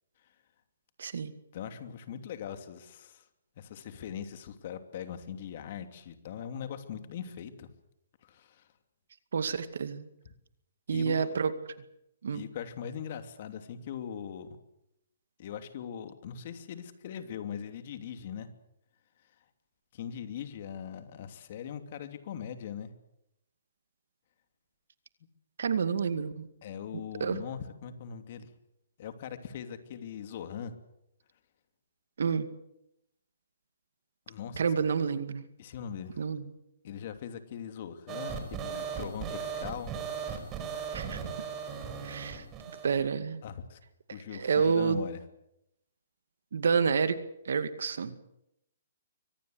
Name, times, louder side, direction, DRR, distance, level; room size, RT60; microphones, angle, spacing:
voice 1, 1.0-1.3 9.3-10.0 10.9-11.5 12.2-12.4 25.6-26.5 27.2-27.4 32.2-32.5 34.6-35.4 36.2-36.5 40.9-41.2 42.0-42.4 42.8-43.4 44.3-45.0 46.5-47.2 47.5-48.1, right 6 dB, 75° right, 11 dB, 2.2 m, -28 dB
voice 2, 1.5-3.2 3.6-7.7 8.2-8.7 10.9-11.3 12.3-14.6 15.4-18.5 19.9-22.9 26.6-28.5 29.0-30.7 34.3-34.6 35.6-36.2 36.8-39.9 40.6-40.8 43.4-43.8 44.1-45.2, left 8 dB, 50° left, 8 dB, 2.8 m, -41 dB
sound 1, 38.1-43.1, right 7 dB, 25° right, 4.7 m, -37 dB
24.0 x 18.5 x 8.0 m, 0.83 s
hypercardioid pair, 150°, 0 cm